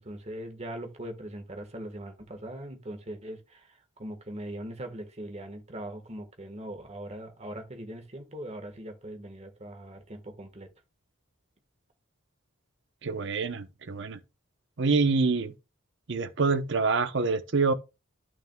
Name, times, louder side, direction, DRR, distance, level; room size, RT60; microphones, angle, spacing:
voice 1, 0.0-10.7, right 1 dB, 30° right, 1.5 m, -41 dB
voice 2, 13.0-14.2 14.8-15.5 16.1-17.7, right 4 dB, 60° right, 0.8 m, -26 dB
11.5 x 6.2 x 2.3 m
head